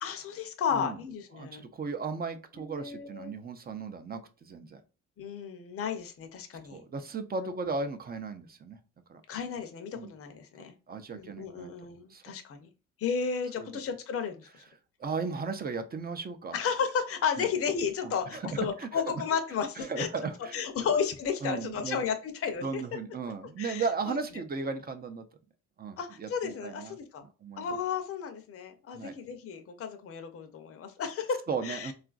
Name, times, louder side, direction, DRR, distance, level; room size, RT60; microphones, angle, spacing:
voice 1, 0.0-1.6 2.6-3.3 5.2-6.8 7.4-7.5 9.3-10.7 11.1-12.7 13.0-14.5 16.5-20.1 20.5-22.8 23.6-24.2 26.0-27.2 27.6-31.9, left 6 dB, 50° left, 6 dB, 0.6 m, -33 dB
voice 2, 1.3-4.8 6.7-8.8 9.1-9.2 9.9-10.1 10.9-11.7 12.1-12.2 13.6-13.7 15.0-16.6 17.4-17.5 18.0-19.0 19.8-20.6 21.4-22.1 22.6-25.3 25.8-27.7 28.9-29.1 31.5-31.9, right 4 dB, 30° right, 8 dB, 0.5 m, -36 dB
3.7 x 2.4 x 2.4 m, 0.34 s
cardioid pair, 90°, 30 cm